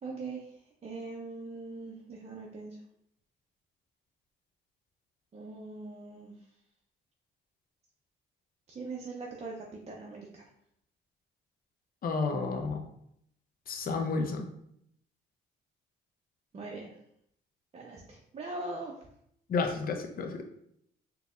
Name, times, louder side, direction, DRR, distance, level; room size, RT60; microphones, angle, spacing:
voice 1, 0.0-2.8 5.3-6.4 8.7-10.5 16.5-17.0 17.7-19.0, right 3 dB, 30° right, -2 dB, 0.5 m, -41 dB
voice 2, 12.0-12.8 13.7-14.5 19.5-20.4, left 4 dB, 45° left, 4 dB, 0.6 m, -31 dB
3.9 x 2.8 x 2.4 m, 0.72 s
cardioid pair, 90°, 20 cm